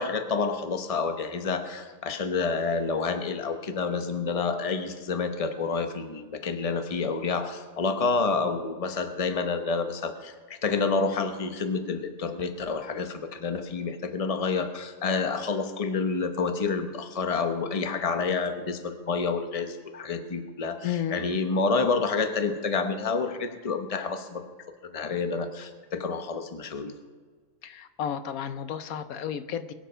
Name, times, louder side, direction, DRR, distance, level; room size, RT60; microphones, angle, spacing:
voice 1, 0.0-24.5 24.8-26.9, left 4 dB, 30° left, 8 dB, 0.9 m, -29 dB
voice 2, 20.8-21.3 27.6-29.7, left 9 dB, 80° left, 11 dB, 1.2 m, -32 dB
21.5 x 7.7 x 5.6 m, 1.5 s
omnidirectional pair, 1.5 m